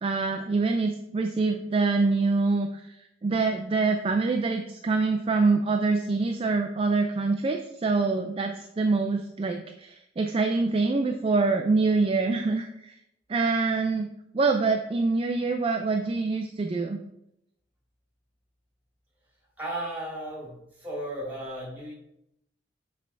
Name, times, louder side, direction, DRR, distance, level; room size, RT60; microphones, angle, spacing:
voice 1, 0.0-3.0 3.2-13.0 13.3-14.1 14.3-17.0, right 3 dB, 30° right, 5 dB, 0.3 m, -25 dB
voice 2, 19.6-21.9, right 1 dB, 10° right, -5 dB, 2.6 m, -35 dB
7.3 x 3.4 x 4.5 m, 0.80 s
head